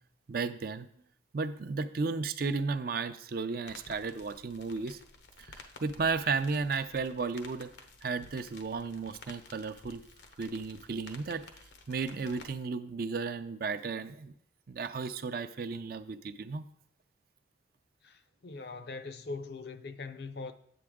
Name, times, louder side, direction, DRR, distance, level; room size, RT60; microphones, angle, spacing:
voice 1, 0.3-0.9 1.3-5.0 5.4-7.7 8.0-10.0 10.4-11.4 11.9-14.3 14.7-16.6, right 4 dB, 55° right, 0.5 m, -34 dB
sound 1, 3.6-12.6, left 3 dB, 85° left, 0.9 m, -53 dB
voice 2, 18.0-20.5, left 3 dB, 60° left, 0.6 m, -41 dB
8.6 x 7.7 x 3.6 m
head